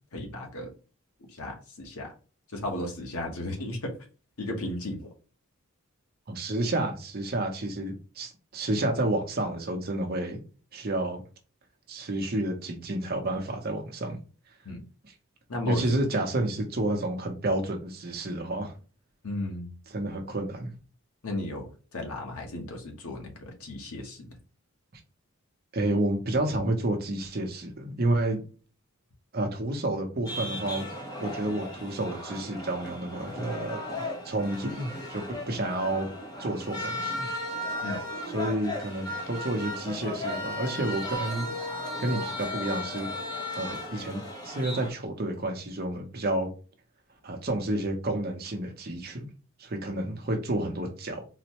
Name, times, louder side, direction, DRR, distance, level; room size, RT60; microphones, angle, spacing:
voice 1, 0.1-0.7 1.3-2.1 2.5-4.0 4.4-5.1 14.6-14.8 15.5-16.0 19.2-19.7 21.2-24.3 37.8-38.0, left 1 dB, 80° left, 1.0 m, -35 dB
voice 2, 6.3-10.4 10.7-11.2 11.9-14.2 15.6-18.7 19.9-20.7 25.7-28.4 29.3-30.9 31.2-33.8 34.2-36.1 36.4-37.3 38.3-41.5 42.0-43.2 43.6-46.5 47.2-49.3 49.6-51.3, right 1 dB, 45° right, 0.7 m, -30 dB
sound 1, 30.3-44.9, left 1 dB, 20° left, 0.7 m, -35 dB
4.0 x 2.1 x 2.8 m
head